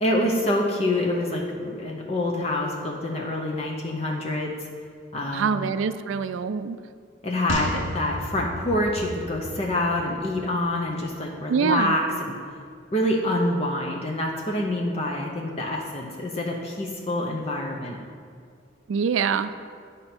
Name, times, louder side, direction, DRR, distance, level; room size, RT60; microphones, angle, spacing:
voice 1, 0.0-4.5 5.1-5.7 7.2-12.4 12.9-18.0, left 1 dB, 30° left, -1 dB, 0.6 m, -26 dB
voice 2, 5.3-6.8 11.5-11.9 18.9-19.5, right 6 dB, 80° right, 13 dB, 0.3 m, -24 dB
sound 1, 7.5-10.9 11.2-11.3, left 2 dB, 75° left, 0.7 m, -34 dB
9.7 x 5.1 x 4.4 m, 2.2 s
head